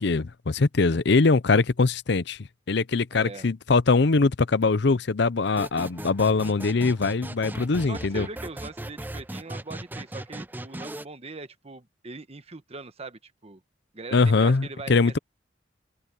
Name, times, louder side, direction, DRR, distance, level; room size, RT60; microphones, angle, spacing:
voice 1, 0.0-2.4 2.7-8.3 14.1-15.2, left 4 dB, 65° left, 0.7 m, -22 dB
voice 2, 3.1-3.5 7.9-13.6 13.9-15.2, right 3 dB, 35° right, 1.2 m, -41 dB
sound 1, 5.5-11.0, right 1 dB, 10° right, 0.5 m, -38 dB
open air
head